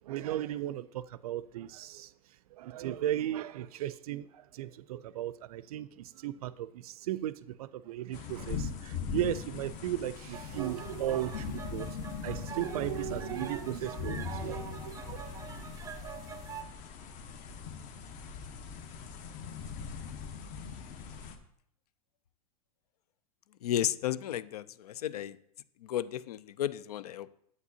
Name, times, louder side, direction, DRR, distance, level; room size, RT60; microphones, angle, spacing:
voice 1, 0.0-2.1 2.6-11.9 12.2-15.2, right 12 dB, 70° right, 0.4 m, -36 dB
sound 1, 8.1-21.4, left 6 dB, 45° left, 1.0 m, -41 dB
sound 2, 10.3-16.6, right 6 dB, 15° right, 0.5 m, -45 dB
voice 2, 23.6-25.4 25.8-27.3, left 11 dB, 80° left, 0.5 m, -33 dB
8.1 x 8.0 x 2.8 m
hypercardioid pair, 105°, 19 cm